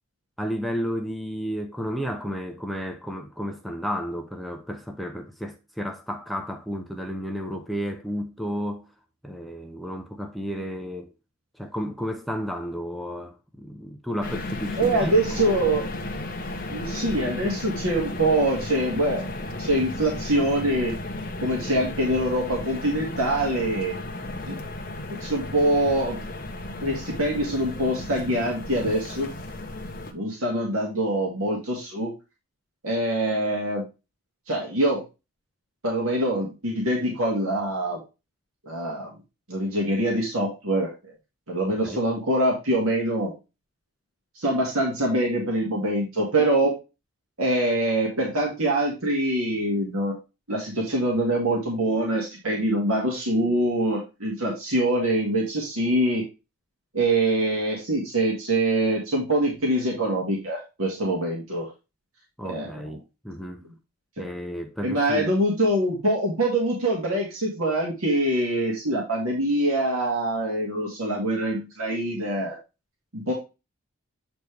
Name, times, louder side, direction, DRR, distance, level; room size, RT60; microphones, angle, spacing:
voice 1, 0.4-8.9 9.2-11.1 11.6-15.6 24.2-24.4 41.7-42.0 62.4-63.6 64.2-65.3, equal, ahead, 0.6 m, -32 dB
sound 1, 14.2-30.1, left 2 dB, 40° left, 1.1 m, -34 dB
voice 2, 14.8-15.8 16.7-19.3 19.6-21.0 21.4-23.9 24.5-24.6 25.2-26.2 26.8-29.3 30.1-32.1 32.8-33.8 34.5-35.0 35.8-38.0 38.7-39.1 39.5-40.9 41.5-43.3 44.4-46.8 47.4-50.2 50.5-56.2 56.9-61.7 62.4-62.9 63.6-63.7 64.2-64.3 64.8-72.6 73.1-73.3, right 1 dB, 75° right, 2.2 m, -24 dB
8.0 x 4.4 x 3.3 m
head